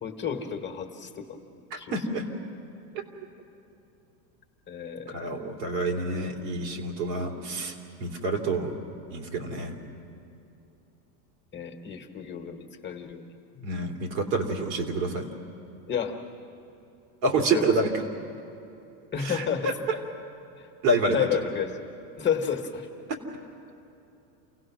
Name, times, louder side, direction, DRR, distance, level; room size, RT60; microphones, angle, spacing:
voice 1, 0.0-1.9 4.7-5.3 11.5-13.2 15.9-16.2 17.5-17.7 19.1-19.7 20.6-20.7 21.1-21.8 22.2-22.9, left 7 dB, 20° left, 4 dB, 1.5 m, -31 dB
voice 2, 1.7-2.2 5.1-7.7 8.0-8.7 9.1-9.7 13.5-15.2 17.2-17.9 19.2-20.0 20.8-21.4, right 2 dB, 80° right, 2 dB, 3.3 m, -28 dB
28.5 x 17.0 x 6.2 m, 2.9 s
supercardioid pair, 130°, 50 cm